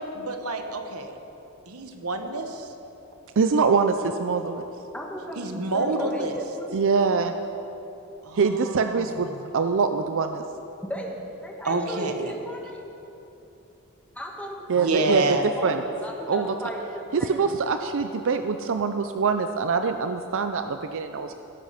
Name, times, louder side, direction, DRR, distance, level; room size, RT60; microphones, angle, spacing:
voice 1, 0.1-1.1 1.7-2.7 5.4-6.4 8.2-9.4 11.6-12.3 14.7-15.5, right 2 dB, 75° right, 6 dB, 1.1 m, -28 dB
voice 2, 3.4-4.6 6.7-7.3 8.4-9.3 9.5-10.4 14.7-15.2 15.6-15.8 16.3-16.5 17.1-21.3, right 5 dB, 60° right, 8 dB, 0.5 m, -24 dB
voice 3, 4.9-5.5 5.7-6.8 10.8-12.8 14.1-17.5, equal, 5° left, 0 dB, 1.5 m, -36 dB
16.5 x 8.6 x 5.8 m, 3.0 s
head